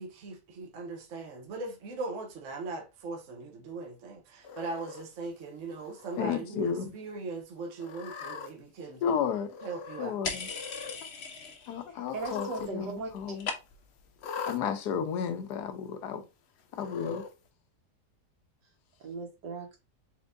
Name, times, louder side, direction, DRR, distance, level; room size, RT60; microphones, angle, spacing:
voice 1, 0.0-9.0 9.6-10.2, right 3 dB, 50° right, 1.1 m, -39 dB
Cat, 4.4-5.0 5.8-6.2 6.6-6.7 7.8-8.5 9.5-10.1 10.4-11.0 12.0-12.7 13.0-13.1 14.2-14.6 15.5-15.6 16.7-17.3, left 5 dB, 90° left, 0.5 m, -41 dB
voice 2, 6.2-6.8 9.0-9.5 10.0-10.5 11.7-12.5 12.7-13.3 14.5-16.2 16.8-17.2, left 7 dB, 70° left, 1.3 m, -32 dB
sound 1, 10.2-11.8 12.1-12.7 12.9-14.0, left 5 dB, 50° left, 0.8 m, -38 dB
voice 3, 11.9-13.4 19.0-19.8, right 4 dB, 75° right, 1.9 m, -39 dB
4.4 x 3.6 x 2.6 m
omnidirectional pair, 1.9 m